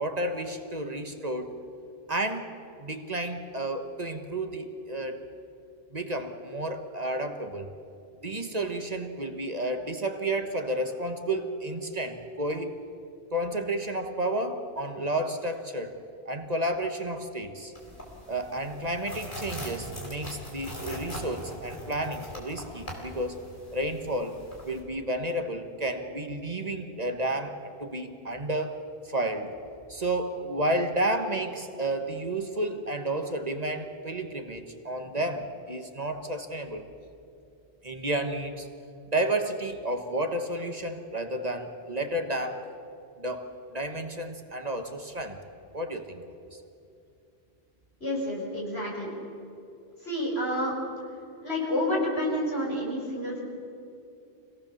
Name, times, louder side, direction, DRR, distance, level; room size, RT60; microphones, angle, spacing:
voice 1, 0.0-1.5 2.1-2.5 2.8-5.2 5.9-7.7 8.2-12.8 13.3-16.0 16.2-17.7 18.3-23.4 23.7-28.8 29.0-29.6 29.9-36.9 37.8-38.7 39.1-42.7 43.2-45.4 45.7-46.2 46.5-46.6, right 1 dB, 40° right, 6 dB, 1.4 m, -31 dB
sound 1, 17.8-24.8, equal, 55° left, 4.2 m, -41 dB
voice 2, 48.0-49.1 50.0-50.7 51.4-53.4, left 1 dB, 80° left, -3 dB, 6.1 m, -29 dB
25.5 x 17.5 x 7.2 m, 2.7 s
omnidirectional pair, 1.1 m